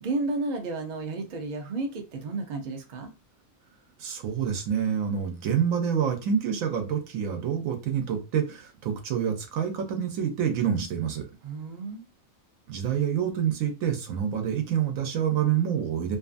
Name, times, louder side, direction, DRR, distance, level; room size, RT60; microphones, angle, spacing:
voice 1, 0.0-3.1 11.4-12.1, right 3 dB, 50° right, 4 dB, 0.5 m, -32 dB
voice 2, 4.0-11.3 12.7-16.2, right 8 dB, 80° right, 4 dB, 1.1 m, -27 dB
2.6 x 2.4 x 2.5 m, 0.29 s
omnidirectional pair, 1.4 m